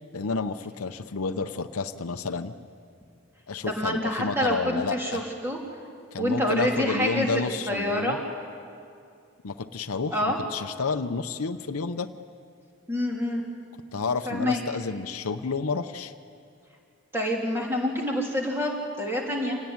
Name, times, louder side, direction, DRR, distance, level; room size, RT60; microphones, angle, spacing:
voice 1, 0.1-2.5 3.5-5.2 6.1-8.2 9.4-12.1 13.9-16.1, left 4 dB, 90° left, 8 dB, 0.8 m, -30 dB
voice 2, 3.7-5.6 6.2-8.2 10.1-10.4 12.9-13.4 14.3-14.6 17.1-19.6, left 1 dB, 10° right, -1 dB, 3.2 m, -27 dB
26.0 x 17.5 x 9.6 m, 2.4 s
head